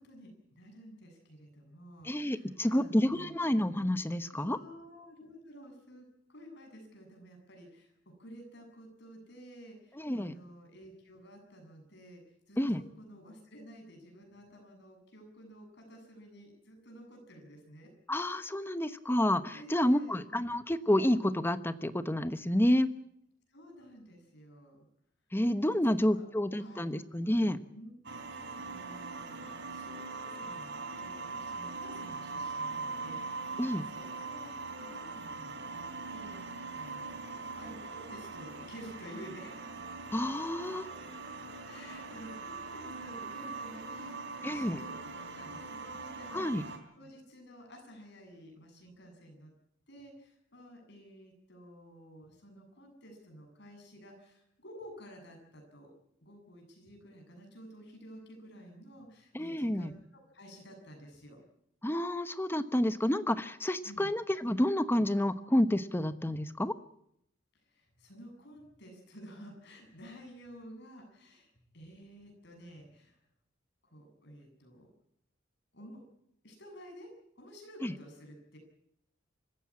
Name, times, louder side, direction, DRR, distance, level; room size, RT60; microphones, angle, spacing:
voice 1, 0.0-3.4 4.3-7.9 8.2-12.2 12.5-17.9 19.5-20.2 23.5-24.9 25.9-26.2 26.5-26.9 27.7-27.9 28.3-30.7 31.0-35.8 36.1-39.5 40.8-41.2 41.7-49.5 49.9-55.9 56.2-61.4 63.8-64.1 67.7-73.2 73.8-74.9 75.7-76.0 76.4-77.1 77.4-78.6, equal, 60° left, 4 dB, 7.4 m, -52 dB
voice 2, 2.0-4.6 10.0-10.3 12.6-12.8 18.1-22.9 25.3-27.6 33.6-33.8 40.1-40.8 44.4-44.8 46.3-46.6 59.3-59.9 61.8-66.7 77.8-77.9, left 1 dB, 10° left, 11 dB, 1.1 m, -29 dB
sound 1, 28.0-46.8, right 3 dB, 65° right, 3.2 m, -41 dB
25.5 x 15.0 x 8.6 m, 0.74 s
head